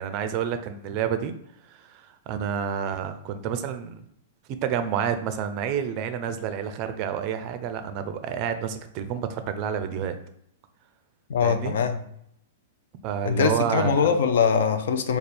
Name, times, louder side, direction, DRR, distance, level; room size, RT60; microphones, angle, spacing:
voice 1, 0.0-1.3 1.7-4.0 4.6-10.2 11.4-11.8 13.0-14.1, right 8 dB, 35° right, 9 dB, 0.4 m, -29 dB
voice 2, 11.3-12.0 13.3-15.2, left 6 dB, 75° left, 8 dB, 0.5 m, -22 dB
3.3 x 2.3 x 4.2 m, 0.73 s
hypercardioid pair, 155°, 0 cm